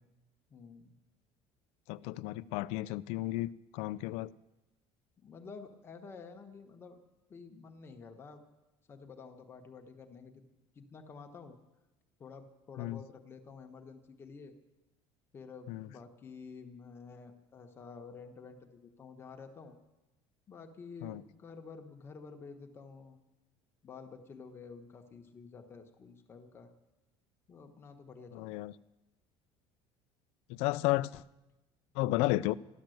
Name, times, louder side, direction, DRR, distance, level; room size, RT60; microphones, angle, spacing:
voice 1, 0.5-1.0 5.2-7.0 7.3-8.4 8.9-10.4 10.7-11.6 12.2-14.5 15.3-19.7 20.5-23.2 23.8-26.7 27.5-28.7, left 5 dB, 20° left, 1.2 m, -50 dB
voice 2, 1.9-4.3 12.8-13.0 15.7-15.8 21.0-21.2 28.3-28.7 30.5-31.2 32.0-32.5, left 18 dB, 75° left, 0.5 m, -33 dB
13.5 x 12.0 x 7.8 m
cardioid pair, 170°, 11 cm